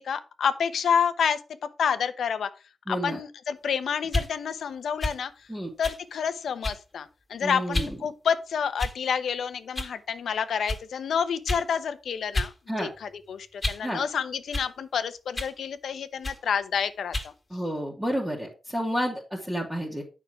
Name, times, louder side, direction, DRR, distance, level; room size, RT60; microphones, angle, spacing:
voice 1, 0.0-1.4 1.8-2.5 2.9-5.3 5.8-17.3, left 7 dB, 80° left, 0.9 m, -29 dB
voice 2, 2.9-3.2 5.5-5.7 7.4-8.0 12.7-12.9 13.8-14.0 17.5-20.0, equal, 10° right, 1.8 m, -30 dB
sound 1, 4.0-4.3 5.0-5.2 5.8-6.0 6.6-6.9 7.7-7.9 8.8-9.2 9.7-9.9 10.7-10.8 11.5-11.7 12.3-12.5 12.9-13.9 14.5-14.7 15.3-15.6 16.2-16.4 17.1-17.3, left 1 dB, 20° left, 2.0 m, -30 dB
9.4 x 6.0 x 4.8 m
wide cardioid pair, 165°, 0 cm